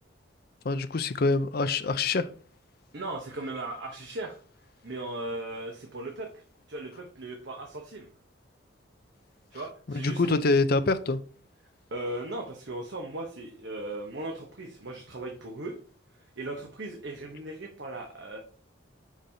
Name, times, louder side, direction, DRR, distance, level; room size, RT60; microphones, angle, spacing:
voice 1, 0.6-2.3 9.9-11.2, left 3 dB, 50° left, 12 dB, 0.5 m, -25 dB
voice 2, 2.9-4.4 4.8-6.4 6.7-8.1 9.5-10.4 11.9-15.7 16.4-18.4, right 2 dB, 65° right, 1 dB, 1.0 m, -37 dB
7.2 x 5.4 x 2.7 m, 0.42 s
head